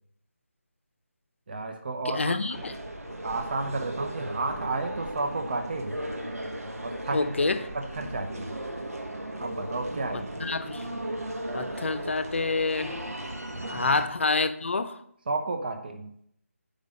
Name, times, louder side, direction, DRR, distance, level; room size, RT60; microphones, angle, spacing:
voice 1, 1.5-2.4 3.2-5.9 6.8-7.3 7.7-8.5 9.4-10.3 13.5-13.9 15.3-16.1, right 3 dB, 40° right, 0.8 m, -32 dB
voice 2, 2.1-2.7 7.1-7.6 10.1-10.8 11.5-12.9 13.7-14.9, left 3 dB, 55° left, 0.6 m, -27 dB
sound 1, 2.5-14.1, right 1 dB, 80° right, 1.2 m, -36 dB
5.2 x 5.1 x 6.3 m
figure-of-eight pair, 155°, 8 cm